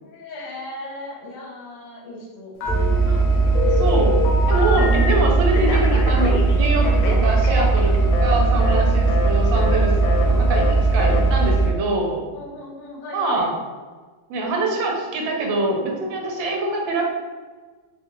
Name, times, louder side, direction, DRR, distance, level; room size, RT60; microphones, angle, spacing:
voice 1, 0.0-3.0 4.8-5.4 9.7-10.7 11.0-11.7 12.3-13.5, left 1 dB, 65° left, -4 dB, 1.4 m, -36 dB
Telephone, 2.6-3.2 3.5-5.2 5.5-8.3 8.6-8.8 9.1-9.3 9.6-9.8 10.0-10.2 10.5-10.7 11.0-11.2, left 5 dB, 80° left, 1.3 m, -27 dB
sound 1, 2.6-11.7, right 3 dB, 30° right, 0.4 m, -18 dB
voice 2, 3.8-4.2 4.5-9.9 10.2-12.2 13.1-13.5 14.3-17.1, right 2 dB, 75° right, 0 dB, 1.3 m, -24 dB
3.3 x 2.4 x 2.9 m, 1.4 s
omnidirectional pair, 2.2 m